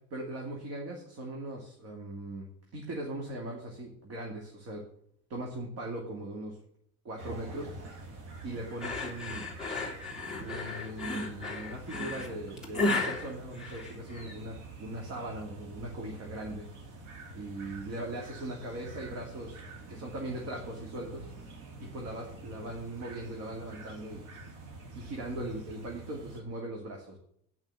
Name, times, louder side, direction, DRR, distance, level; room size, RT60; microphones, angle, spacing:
voice 1, 0.1-4.8 5.3-6.6 7.0-7.7 8.4-9.5 10.4-16.7 17.0-19.6 19.9-21.3 21.8-24.3 24.9-27.2, right 1 dB, 50° right, 0 dB, 2.7 m, -39 dB
sound 1, 7.2-26.4, right 2 dB, 70° right, 2.8 m, -47 dB
sound 2, 8.8-14.3, left 2 dB, ahead, 2.6 m, -34 dB
9.3 x 6.0 x 8.4 m, 0.69 s
cardioid pair, 145°, 32 cm